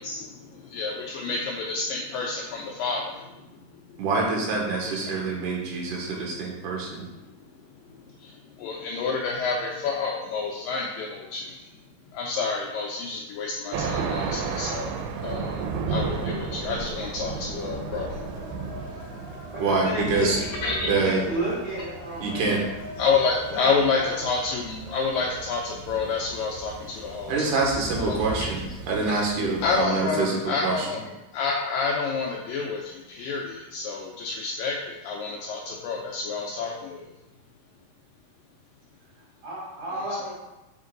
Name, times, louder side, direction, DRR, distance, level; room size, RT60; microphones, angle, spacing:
voice 1, 0.0-3.2 3.5-3.6 3.9-4.0 4.8-4.9 8.1-11.7 12.1-15.0 15.2-18.2 20.4-20.9 23.0-27.6 28.0-28.5 29.1-29.2 29.6-31.0 31.3-37.0, left 4 dB, 80° left, -1 dB, 2.1 m, -29 dB
voice 2, 4.0-7.0 19.6-20.4 20.8-21.2 22.2-22.6 27.3-30.9, right 3 dB, 65° right, -1 dB, 2.5 m, -26 dB
Thunder, 13.7-29.8, right 5 dB, 85° right, 2.6 m, -35 dB
sound 1, 15.1-25.4, left 1 dB, 40° left, 1.5 m, -43 dB
voice 3, 19.5-22.6 23.5-24.3 39.4-40.3, right 1 dB, 40° right, -9 dB, 3.0 m, -33 dB
5.5 x 5.2 x 3.8 m, 1.0 s
omnidirectional pair, 4.4 m